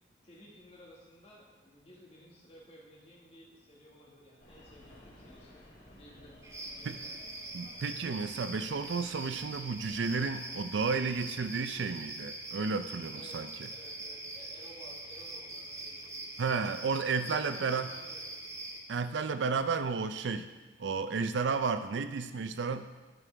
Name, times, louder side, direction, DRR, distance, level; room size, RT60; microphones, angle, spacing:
voice 1, 0.2-5.6 5.9-7.5 13.1-13.4 13.7-16.6 17.3-18.4, equal, 35° left, -3 dB, 1.7 m, -55 dB
sound 1, 4.4-11.7, left 1 dB, 85° left, 2.9 m, -57 dB
sound 2, 6.4-18.8, right 2 dB, 15° right, 0.7 m, -43 dB
voice 2, 7.5-13.7 16.4-17.9 18.9-20.4 20.8-22.9, right 4 dB, 75° right, 10 dB, 0.5 m, -32 dB
11.0 x 6.3 x 3.3 m, 1.2 s
head